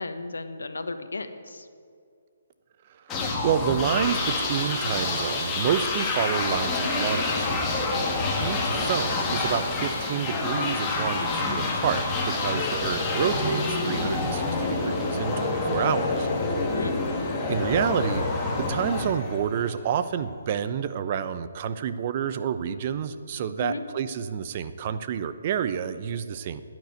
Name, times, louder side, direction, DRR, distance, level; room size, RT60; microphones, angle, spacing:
voice 1, 0.0-1.7 16.7-16.9 23.6-23.8, left 3 dB, 90° left, 9 dB, 1.2 m, -34 dB
sound 1, 3.1-19.8, left 3 dB, 15° left, 2.2 m, -27 dB
voice 2, 3.4-7.8 8.4-16.3 17.5-18.4 18.7-26.6, right 8 dB, 40° right, 12 dB, 0.7 m, -29 dB
sound 2, 3.9-11.2, right 2 dB, 60° right, 3.0 m, -43 dB
12.0 x 9.3 x 9.3 m, 2.2 s
hypercardioid pair, 155°, 0 cm